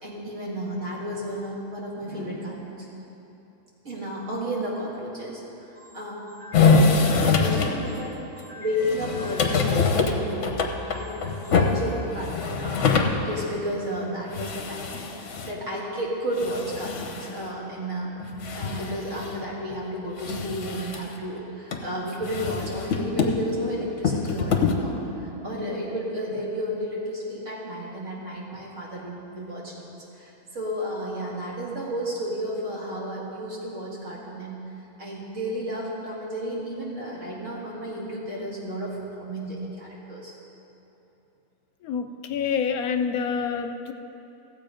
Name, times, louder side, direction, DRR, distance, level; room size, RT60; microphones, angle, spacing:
voice 1, 0.0-2.9 3.8-10.6 10.9-13.0 13.2-18.1 18.6-34.6 35.0-40.3, equal, 55° right, -4 dB, 2.3 m, -32 dB
sound 1, 6.5-7.8 8.4-8.5 8.8-13.2 13.6-13.7 14.0-14.1 14.3-15.6 16.4-17.4 18.2-19.4 19.7-19.8 20.2-21.1 21.7-21.8 22.2-23.5 24.0-24.8, left 4 dB, 60° left, 1.2 m, -24 dB
voice 2, 41.8-43.9, left 6 dB, 75° left, 7 dB, 1.1 m, -27 dB
15.0 x 7.8 x 5.2 m, 2.9 s
omnidirectional pair, 1.6 m